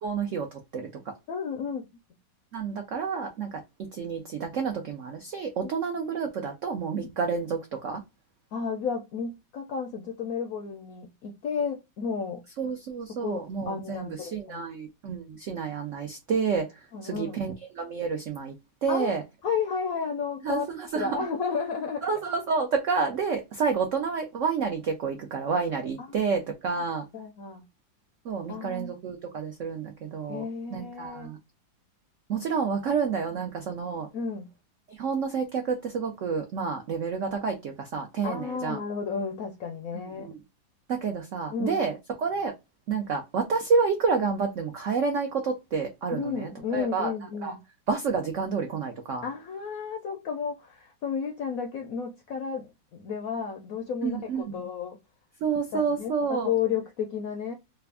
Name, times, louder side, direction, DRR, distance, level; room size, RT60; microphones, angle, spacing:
voice 1, 0.0-1.1 2.5-8.0 12.6-18.5 18.8-19.2 20.4-21.2 22.0-27.0 28.2-30.4 30.7-31.4 32.3-34.1 34.9-38.8 40.2-40.4 40.9-42.5 42.9-47.1 47.4-47.5 47.9-49.3 54.0-54.7 55.4-56.5, right 5 dB, 80° right, 0.7 m, -29 dB
voice 2, 1.3-1.9 5.6-5.7 7.0-7.1 8.5-12.4 13.2-14.7 16.9-17.4 18.9-19.2 19.4-20.7 20.9-22.0 27.1-27.6 28.5-28.9 30.3-31.3 34.1-34.5 38.2-40.3 41.5-41.8 46.1-47.6 49.2-55.0 55.7-57.5, left 6 dB, 75° left, 0.8 m, -32 dB
3.3 x 2.4 x 3.2 m
omnidirectional pair, 2.0 m